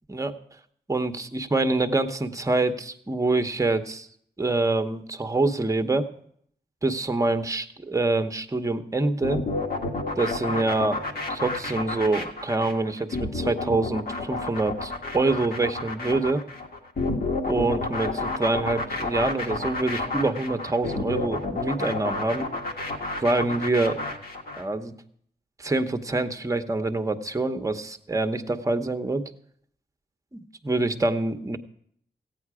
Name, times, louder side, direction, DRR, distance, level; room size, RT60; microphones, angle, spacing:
voice 1, 0.9-4.1 4.4-6.1 6.8-9.4 10.2-11.0 11.3-16.4 17.5-22.5 23.2-24.0 24.6-24.9 25.6-29.2 30.3-31.6, right 2 dB, 20° right, 8 dB, 0.9 m, -25 dB
sound 1, 9.2-24.6, left 2 dB, 60° left, 1.6 m, -30 dB
15.0 x 9.1 x 4.8 m, 0.66 s
wide cardioid pair, 90°, 17 cm